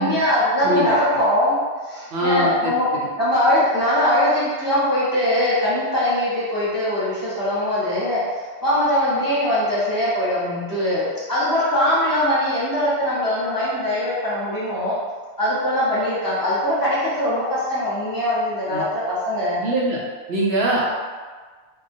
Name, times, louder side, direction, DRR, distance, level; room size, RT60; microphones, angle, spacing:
voice 1, 0.0-2.9 3.2-14.9 15.4-19.6 20.7-20.9, left 1 dB, 20° left, -10 dB, 0.9 m, -21 dB
voice 2, 2.1-2.7 18.7-18.8 19.6-20.0 20.3-20.9, right 1 dB, 70° right, -4 dB, 0.8 m, -22 dB
2.2 x 2.2 x 2.6 m, 1.5 s
omnidirectional pair, 1.2 m